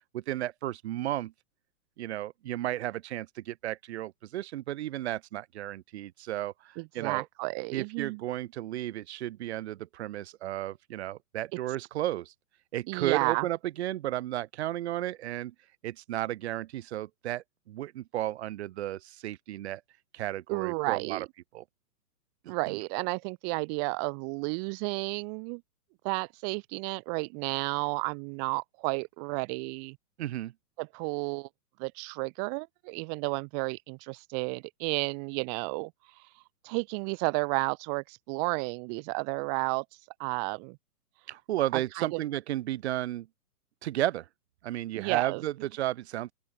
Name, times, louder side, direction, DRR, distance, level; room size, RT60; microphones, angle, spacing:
voice 1, 0.1-1.3 2.0-7.3 7.7-12.3 12.7-15.5 15.8-19.8 20.1-21.3 21.5-21.6 22.4-22.8 30.2-30.5 41.3-43.3 43.8-44.3 44.6-46.3, right 14 dB, 45° right, 3.9 m, -33 dB
voice 2, 6.8-8.2 12.9-13.5 20.5-21.2 22.5-25.6 26.0-30.0 30.8-31.5 31.8-35.9 36.6-39.8 40.2-40.8 41.7-42.2 44.9-45.4, right 38 dB, 25° right, 2.9 m, -32 dB
open air
hypercardioid pair, 165°, 47 cm